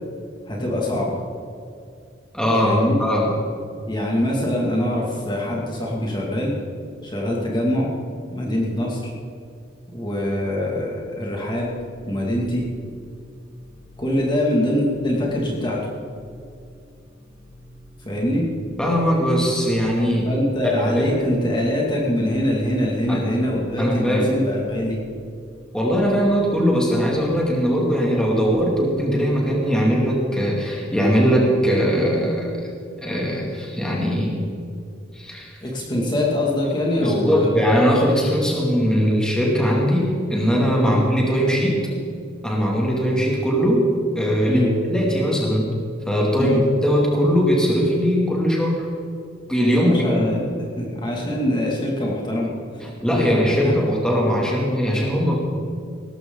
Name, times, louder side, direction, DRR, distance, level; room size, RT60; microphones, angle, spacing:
voice 1, 0.5-1.2 2.6-3.0 3.9-6.5 7.0-7.9 8.3-9.0 9.9-11.7 12.1-12.6 14.0-15.8 18.0-18.5 20.3-25.0 35.6-37.5 40.8-41.0 44.5-44.7 46.4-46.6 49.7-52.8 53.2-53.3 53.6-53.7, left 1 dB, 25° left, -3 dB, 2.4 m, -23 dB
voice 2, 2.3-3.3 18.8-20.3 20.6-21.1 23.1-23.2 23.8-24.3 25.7-32.5 33.0-34.4 35.1-35.5 37.0-41.9 42.4-45.7 46.1-46.5 46.8-48.8 49.5-49.9 50.2-50.4 53.0-55.4, equal, 5° left, -3 dB, 2.6 m, -20 dB
sound 1, 11.6-28.4, equal, 25° right, 3.3 m, -48 dB
18.0 x 14.0 x 4.0 m, 2.4 s
head